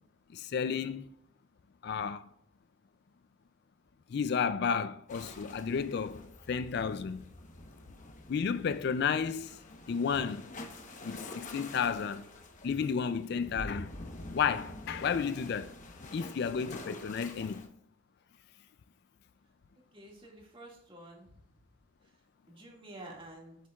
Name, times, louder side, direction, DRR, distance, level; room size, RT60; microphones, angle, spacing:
voice 1, 0.3-1.1 1.8-2.3 4.1-7.3 8.3-9.6 9.9-10.5 11.0-12.3 12.6-13.9 14.3-15.7 16.1-17.7, left 6 dB, 55° left, 0.3 m, -32 dB
sound 1, 5.1-17.7, left 2 dB, 40° left, 1.0 m, -47 dB
voice 2, 19.9-21.3 22.5-23.6, right 1 dB, 25° right, 2.0 m, -49 dB
7.9 x 7.5 x 2.4 m
head